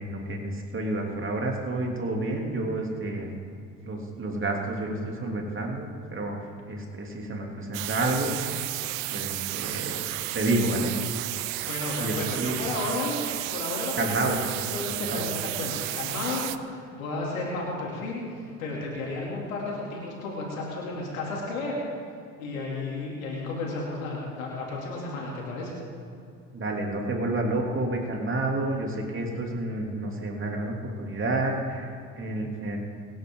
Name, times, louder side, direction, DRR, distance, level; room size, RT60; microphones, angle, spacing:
voice 1, 0.0-3.3 3.8-8.3 9.1-10.0 10.3-10.9 12.0-12.6 14.0-14.4 15.0-15.2 26.5-32.8, right 2 dB, 30° right, 0 dB, 3.1 m, -29 dB
sound 1, 7.7-16.6, right 16 dB, 75° right, 0.8 m, -32 dB
voice 2, 11.6-13.2 13.5-21.7 22.4-25.7, left 2 dB, 80° left, -3 dB, 3.2 m, -33 dB
24.0 x 10.5 x 3.9 m, 2.4 s
hypercardioid pair, 60°, 41 cm